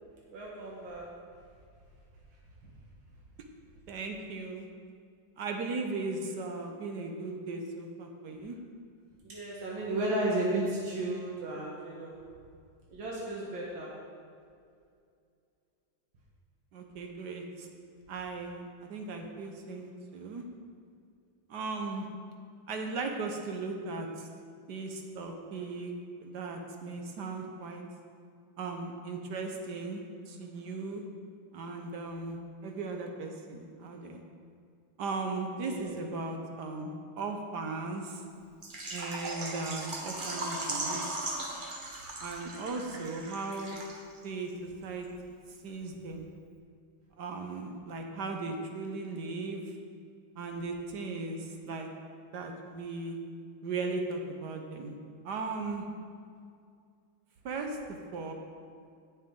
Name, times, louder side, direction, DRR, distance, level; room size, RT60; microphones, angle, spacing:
voice 1, 0.3-1.1 2.6-2.7 9.2-12.2 12.9-14.0 35.7-36.2, right 1 dB, 90° right, -4 dB, 2.2 m, -34 dB
voice 2, 3.9-4.7 5.4-8.6 16.7-17.7 18.1-20.4 21.5-22.0 22.7-24.3 24.7-25.9 26.2-27.8 28.6-31.0 31.5-34.2 35.0-38.2 38.9-41.3 41.6-41.7 42.2-43.8 44.2-45.1 45.6-46.3 47.2-49.6 50.4-51.9 52.3-53.2 53.6-54.9 55.2-55.8 57.4-57.8 58.1-58.3, right 3 dB, 65° right, 3 dB, 1.5 m, -37 dB
Water / Liquid, 38.6-44.2 44.5-44.6 45.0-45.1, right 2 dB, 30° right, 1.0 m, -38 dB
16.5 x 6.2 x 3.8 m, 2.3 s
omnidirectional pair, 2.1 m